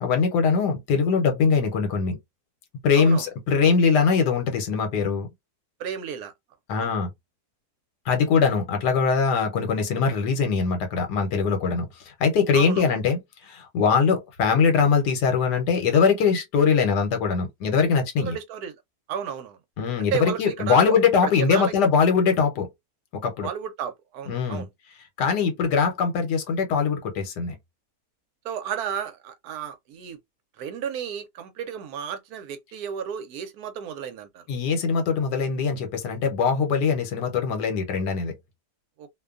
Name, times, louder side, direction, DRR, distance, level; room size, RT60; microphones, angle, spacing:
voice 1, 0.0-2.2 2.8-5.3 6.7-7.1 8.1-11.9 12.2-18.4 19.8-22.7 23.1-23.5 24.3-24.7 25.2-27.6 34.5-38.3, left 5 dB, 80° left, 1.3 m, -22 dB
voice 2, 5.8-6.3 6.8-6.9 12.5-12.9 18.2-18.7 19.1-19.6 20.0-20.9 21.2-21.7 23.4-24.7 28.4-30.2 30.6-34.4 39.0-39.1, right 8 dB, 75° right, 1.1 m, -33 dB
2.8 x 2.2 x 2.3 m
omnidirectional pair, 1.8 m